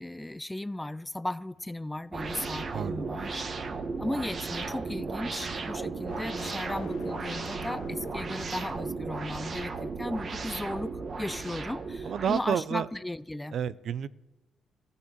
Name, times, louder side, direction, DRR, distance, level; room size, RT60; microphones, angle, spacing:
voice 1, 0.0-3.5 4.0-13.6, left 1 dB, 10° left, 0.4 m, -36 dB
sound 1, 1.5-8.5, left 7 dB, 85° left, 1.4 m, -50 dB
sound 2, 2.1-12.4, right 4 dB, 40° right, 1.2 m, -35 dB
voice 2, 2.7-3.2 12.0-12.9 13.5-14.1, right 8 dB, 60° right, 0.5 m, -30 dB
15.0 x 6.9 x 9.8 m
cardioid pair, 90°, 0 cm